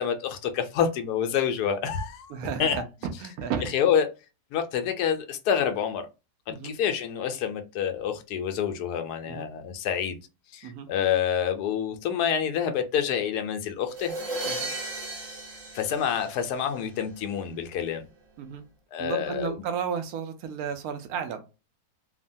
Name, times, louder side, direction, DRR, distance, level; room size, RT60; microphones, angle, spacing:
voice 1, 0.0-2.3 2.6-2.8 3.7-4.1 4.5-6.1 6.5-10.2 10.5-14.2 15.7-18.1 18.9-19.6, left 8 dB, 85° left, 1.1 m, -27 dB
voice 2, 2.3-3.7 6.5-6.7 9.3-9.5 10.6-10.9 14.5-14.7 18.4-18.6 19.0-21.4, right 7 dB, 75° right, 1.0 m, -33 dB
sound 1, 13.9-16.8, right 2 dB, 55° right, 1.3 m, -35 dB
3.0 x 2.1 x 2.6 m
omnidirectional pair, 1.6 m